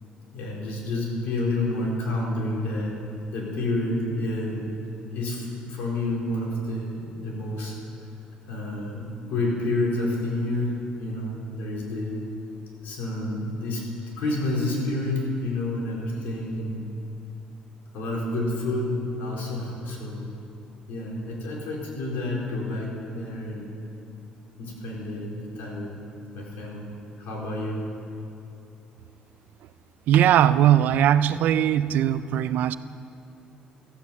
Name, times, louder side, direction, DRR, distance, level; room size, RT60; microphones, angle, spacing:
voice 1, 0.3-2.9 3.3-4.7 5.1-7.7 8.5-12.2 12.8-13.8 14.2-16.9 17.9-20.3 20.9-23.7 24.6-26.0 26.3-26.8 27.2-27.9, left 2 dB, 80° left, -3 dB, 3.8 m, -29 dB
voice 2, 30.1-32.8, right 11 dB, 70° right, 14 dB, 0.4 m, -20 dB
14.0 x 8.2 x 7.4 m, 2.8 s
cardioid pair, 100°, 3 cm